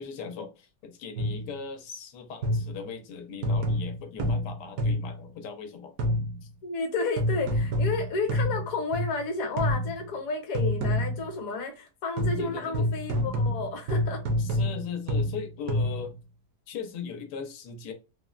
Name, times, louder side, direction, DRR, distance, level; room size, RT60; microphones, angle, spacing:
voice 1, 0.0-6.0 6.4-6.5 12.4-12.9 14.4-16.1 16.7-17.9, left 6 dB, 90° left, 1.2 m, -39 dB
sound 1, 1.2-1.6 2.4-2.9 3.4-5.2 6.0-6.5 7.2-9.2 9.6-10.1 10.5-11.3 12.2-16.2, left 1 dB, 65° right, 1.0 m, -28 dB
voice 2, 6.6-14.2, left 3 dB, 65° left, 1.1 m, -31 dB
3.5 x 2.0 x 2.3 m
omnidirectional pair, 1.8 m